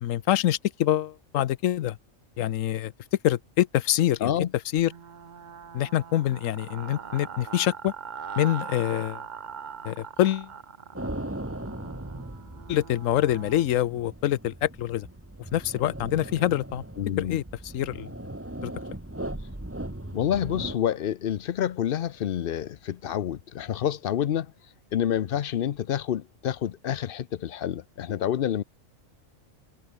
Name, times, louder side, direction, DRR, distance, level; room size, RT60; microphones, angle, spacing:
voice 1, 0.0-2.0 2.4-2.9 3.2-4.3 4.7-4.9 5.7-7.9 8.4-9.2 9.8-10.5 12.7-15.1 15.5-16.8 17.2-18.1 18.6-18.7, left 12 dB, 85° left, 1.1 m, -25 dB
sound 1, 4.8-13.7, right 7 dB, 40° right, 0.8 m, -41 dB
sound 2, 10.9-20.7, right 1 dB, 10° right, 1.7 m, -38 dB
voice 2, 17.0-17.4 20.1-24.5 24.9-28.6, left 10 dB, 55° left, 0.7 m, -28 dB
omnidirectional pair, 1.4 m